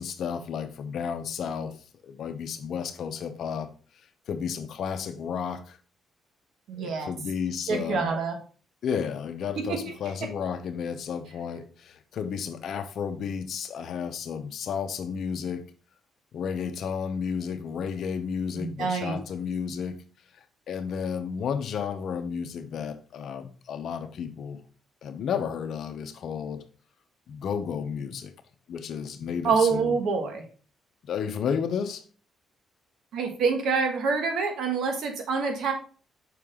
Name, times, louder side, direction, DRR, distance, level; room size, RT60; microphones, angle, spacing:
voice 1, 0.0-1.8 2.0-3.7 4.3-5.8 6.8-8.1 8.8-15.6 16.3-20.0 20.7-24.6 25.0-26.6 27.3-28.3 28.7-30.0 31.0-32.0, left 7 dB, 65° left, 0.8 m, -32 dB
voice 2, 6.7-7.1 7.7-8.4 9.6-9.8 10.2-10.3 18.5-19.2 29.4-30.4 33.1-35.7, right 5 dB, 75° right, 1.5 m, -26 dB
5.9 x 4.6 x 3.7 m
cardioid pair, 90°, 0 cm